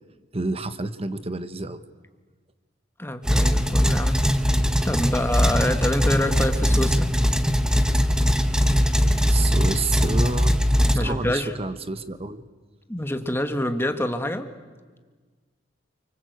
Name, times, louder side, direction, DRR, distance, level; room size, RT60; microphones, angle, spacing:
voice 1, 0.3-1.8 6.7-6.9 8.8-10.6 10.9-12.4, right 2 dB, 30° right, 11 dB, 1.2 m, -30 dB
voice 2, 3.0-4.2 4.8-7.1 10.9-11.5 12.9-14.5, left 1 dB, 15° left, 7 dB, 1.7 m, -26 dB
sound 1, 3.2-11.0, equal, 5° right, 1.2 m, -20 dB
29.5 x 24.5 x 8.1 m, 1.4 s
head